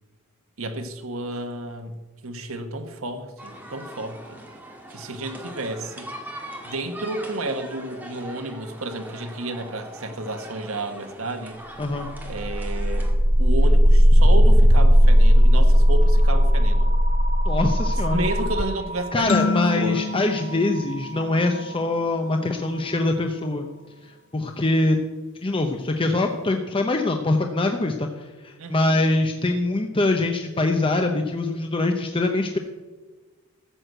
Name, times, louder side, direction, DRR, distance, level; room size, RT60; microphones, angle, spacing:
voice 1, 0.6-2.0 2.2-4.4 4.9-6.1 6.6-11.6 12.2-13.1 13.4-16.9 18.1-20.0 28.6-28.9, right 2 dB, 75° right, 7 dB, 1.3 m, -31 dB
sound 1, 3.4-13.1, right 1 dB, 10° right, 1.7 m, -41 dB
voice 2, 11.8-12.1 17.5-18.2 19.1-23.7 24.3-25.0 25.4-32.6, left 2 dB, 25° left, 4 dB, 0.7 m, -23 dB
sound 2, 12.1-22.0, equal, 25° right, 0.8 m, -18 dB
sound 3, 19.3-21.9, left 3 dB, 55° left, 0.9 m, -28 dB
13.5 x 6.3 x 7.9 m, 1.3 s
head